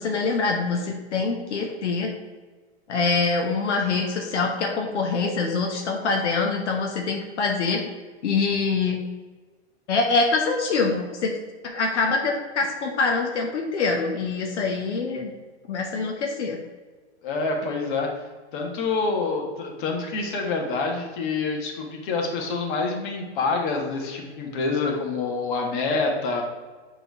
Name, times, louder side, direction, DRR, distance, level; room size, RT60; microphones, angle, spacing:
voice 1, 0.0-2.1 2.9-7.9 8.2-9.0 9.9-11.3 11.6-15.3 15.7-16.6, left 4 dB, 85° left, 1 dB, 1.1 m, -24 dB
voice 2, 17.2-18.1 18.5-26.4, left 4 dB, 45° left, 1 dB, 1.6 m, -27 dB
7.3 x 3.8 x 4.7 m, 1.4 s
hypercardioid pair, 140°, 34 cm